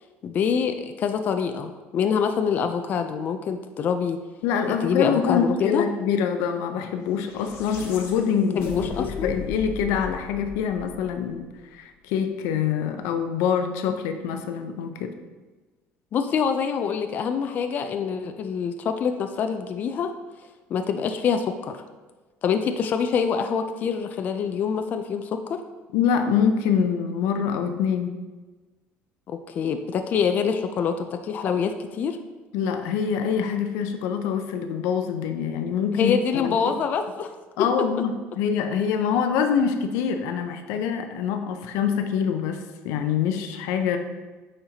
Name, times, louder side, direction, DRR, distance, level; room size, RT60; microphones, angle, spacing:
voice 1, 0.2-4.2 4.7-5.9 8.3-9.3 16.1-20.1 20.7-21.8 22.4-25.6 29.3-32.2 35.9-37.3, left 6 dB, 40° left, 7 dB, 0.4 m, -25 dB
voice 2, 4.4-11.5 11.7-15.1 25.9-28.1 32.5-36.5 37.6-44.0, left 7 dB, 85° left, 7 dB, 0.6 m, -25 dB
sound 1, 7.0-11.5, left 5 dB, 70° left, 0.9 m, -38 dB
8.6 x 4.3 x 2.8 m, 1.3 s
cardioid pair, 150°, 5 cm